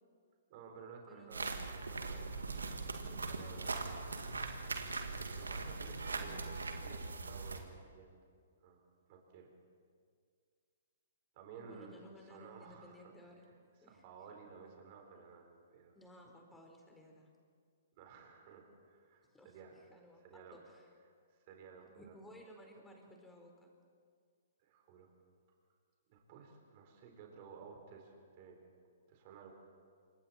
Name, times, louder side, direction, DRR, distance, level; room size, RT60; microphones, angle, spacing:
voice 1, 0.5-4.0 4.3-4.6 5.4-8.1 8.6-8.8 9.1-9.5 11.3-13.1 13.8-15.9 18.0-19.7 20.2-20.6 21.3-22.1 24.6-25.1 26.1-28.6 29.1-29.5, right 5 dB, 40° right, 2 dB, 4.5 m, -55 dB
voice 2, 1.1-1.6 3.0-3.2 6.2-6.6 11.6-13.5 13.8-14.0 15.9-17.3 19.3-20.2 20.5-20.9 21.9-23.7, equal, 5° left, 1 dB, 4.3 m, -58 dB
sound 1, 1.3-7.6, right 3 dB, 80° right, 2.2 m, -41 dB
28.5 x 25.0 x 4.4 m, 2.1 s
figure-of-eight pair, 120°, 0 cm